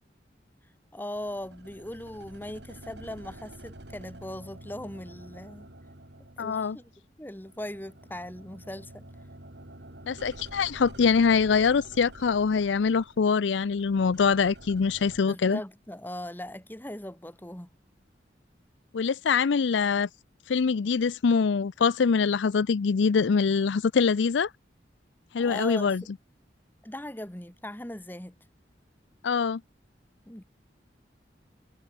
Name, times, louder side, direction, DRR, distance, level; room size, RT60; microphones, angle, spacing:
voice 1, 0.9-5.7 6.4-6.9 7.2-9.1 15.3-17.7 25.4-26.1 26.8-28.4 30.3-30.4, left 1 dB, 10° left, 1.5 m, -39 dB
sound 1, 1.1-7.1 7.3-15.2, right 1 dB, 70° right, 3.4 m, -48 dB
voice 2, 6.4-6.8 10.1-15.6 18.9-20.1 20.5-24.5 25.3-26.0 29.2-29.6, left 5 dB, 85° left, 0.5 m, -24 dB
head